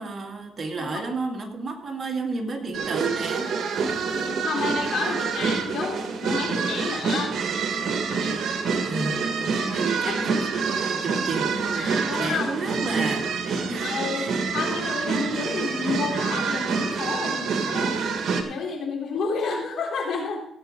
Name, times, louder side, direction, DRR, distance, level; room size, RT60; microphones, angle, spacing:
voice 1, 0.0-3.5 8.8-13.9 14.1-14.5, right 3 dB, 40° right, 2 dB, 2.1 m, -31 dB
sound 1, 2.7-18.4, right 5 dB, 60° right, 1.9 m, -27 dB
voice 2, 3.8-7.3 9.6-9.7 10.0-10.4 11.8-12.6 13.6-18.0 18.3-20.4, left 4 dB, 65° left, 0 dB, 3.9 m, -31 dB
16.5 x 8.5 x 3.9 m, 0.72 s
cardioid pair, 90°, 0 cm